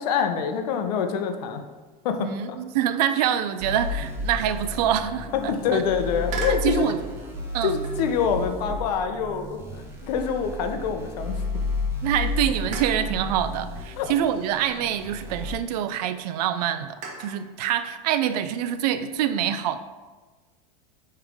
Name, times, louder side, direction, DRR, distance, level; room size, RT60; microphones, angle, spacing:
voice 1, 0.0-1.6 2.0-2.6 5.5-6.9 7.6-9.6 10.0-11.4 14.0-14.1, left 6 dB, 90° left, 0.7 m, -26 dB
voice 2, 2.2-5.8 6.5-7.0 7.5-7.7 12.0-19.8, right 10 dB, 75° right, 0.5 m, -26 dB
sound 1, 3.6-15.5, left 2 dB, 10° right, 0.9 m, -32 dB
sound 2, 6.3-6.7 7.8-8.2 8.9-11.2 11.6-11.7 12.7-13.2 14.3-15.7 17.0-17.4, right 4 dB, 35° right, 1.0 m, -38 dB
8.8 x 3.3 x 3.6 m
supercardioid pair, 165°, 20 cm